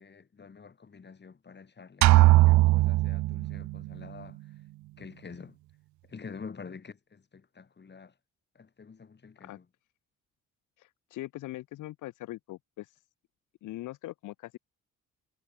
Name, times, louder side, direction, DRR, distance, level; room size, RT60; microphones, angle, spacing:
voice 1, 0.0-4.4 5.0-5.5 6.1-8.1 8.5-9.6, left 5 dB, 35° left, 4.7 m, -47 dB
sound 1, 2.0-3.9, right 18 dB, 75° right, 0.4 m, -20 dB
voice 2, 10.8-13.0 13.6-14.6, left 16 dB, 90° left, 1.6 m, -41 dB
cardioid pair, 90°, 30 cm